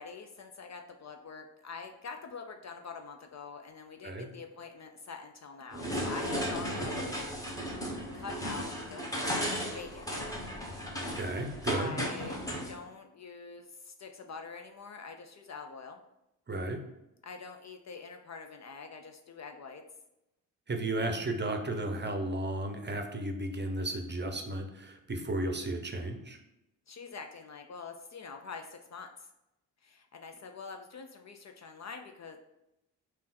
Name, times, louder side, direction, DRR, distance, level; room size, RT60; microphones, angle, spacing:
voice 1, 0.0-7.2 8.1-10.1 11.7-12.4 12.7-16.0 17.2-19.8 26.9-29.3 29.8-32.4, left 5 dB, 40° left, 5 dB, 0.5 m, -45 dB
sound 1, 5.7-12.7, equal, 10° left, 1.3 m, -35 dB
voice 2, 11.2-12.0 16.5-16.8 20.7-26.4, right 2 dB, 25° right, 5 dB, 0.8 m, -34 dB
3.6 x 2.5 x 4.1 m, 0.89 s
hypercardioid pair, 45°, 45 cm